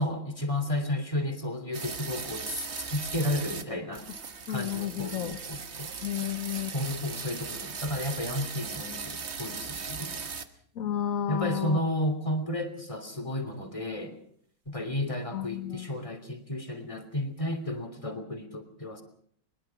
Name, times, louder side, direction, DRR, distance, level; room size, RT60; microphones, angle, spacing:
voice 1, 0.0-4.0 4.5-5.9 6.7-10.2 11.3-14.2 14.7-19.0, left 1 dB, 15° left, 7 dB, 3.1 m, -32 dB
sound 1, 1.7-3.6 3.9-10.4, right 5 dB, 40° right, 1.5 m, -38 dB
voice 2, 4.5-5.4 6.0-6.7 10.8-11.8 15.3-15.9, left 11 dB, 55° left, 9 dB, 1.3 m, -32 dB
22.5 x 21.0 x 5.8 m, 0.63 s
omnidirectional pair, 1.9 m